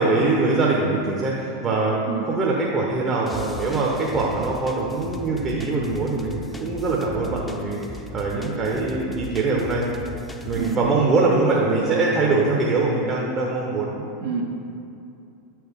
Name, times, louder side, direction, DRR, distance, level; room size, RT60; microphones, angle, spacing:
voice 1, 0.0-9.8 10.5-14.1, right 3 dB, 35° right, -3 dB, 0.8 m, -23 dB
voice 2, 2.1-2.3 10.6-10.8 14.2-14.4, right 7 dB, 70° right, -1 dB, 0.8 m, -27 dB
sound 1, 3.3-10.8, left 1 dB, 10° left, 0.6 m, -38 dB
8.1 x 4.6 x 3.6 m, 2.6 s
hypercardioid pair, 85°, 0 cm